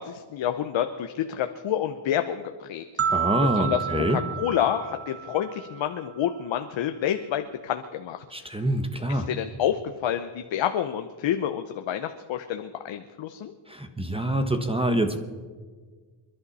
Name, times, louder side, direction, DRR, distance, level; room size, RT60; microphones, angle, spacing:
voice 1, 0.0-2.8 3.5-8.2 9.1-13.5, left 10 dB, 70° left, 7 dB, 0.9 m, -28 dB
sound 1, 3.0-6.1, right 7 dB, 30° right, 1.5 m, -30 dB
voice 2, 3.1-4.2 8.3-9.3 13.7-15.2, right 1 dB, 10° right, 7 dB, 1.2 m, -25 dB
27.5 x 11.5 x 4.2 m, 1.5 s
cardioid pair, 105°, 48 cm